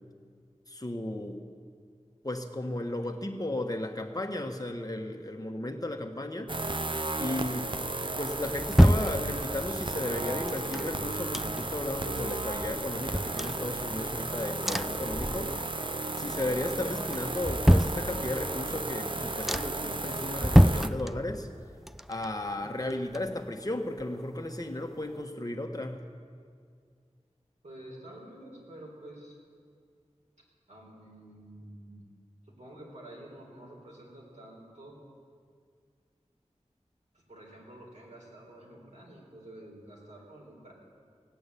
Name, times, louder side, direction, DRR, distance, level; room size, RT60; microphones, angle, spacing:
voice 1, 0.7-1.4 2.2-6.5 7.2-7.7 8.2-15.5 16.2-21.5 22.1-26.0, left 1 dB, 30° left, 4 dB, 1.3 m, -34 dB
sound 1, 6.5-20.9, right 2 dB, 45° right, 0.7 m, -34 dB
sound 2, 8.0-9.8 10.5-11.9 12.3-12.4 12.6-14.2 14.6-15.8 16.1-16.6 17.1-18.6 19.0-19.1 19.5-19.9 20.4-21.6 21.9-23.7 24.0-24.1, equal, ahead, 0.4 m, -26 dB
voice 2, 27.6-29.4 30.7-32.0 32.5-35.0 37.1-40.7, right 1 dB, 75° right, -3 dB, 4.1 m, -49 dB
17.5 x 8.7 x 8.4 m, 2.1 s
wide cardioid pair, 40°, 12 cm